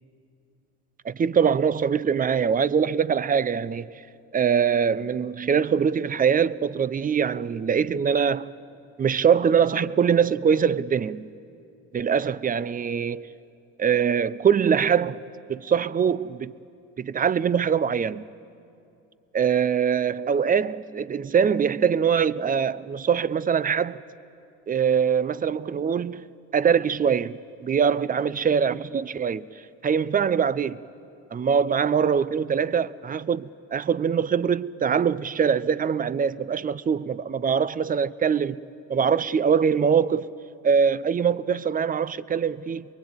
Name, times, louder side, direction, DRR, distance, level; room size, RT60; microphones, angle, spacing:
voice 1, 1.0-3.9 4.3-8.5 9.0-11.3 11.9-13.3 13.8-15.2 15.5-16.5 17.0-18.2 19.3-24.0 24.7-26.3 26.5-29.5 29.8-30.8 31.3-38.6 38.9-40.3 40.6-42.9, right 7 dB, 25° right, 0.6 m, -23 dB
23.0 x 22.0 x 8.8 m
hypercardioid pair, 75°, 36 cm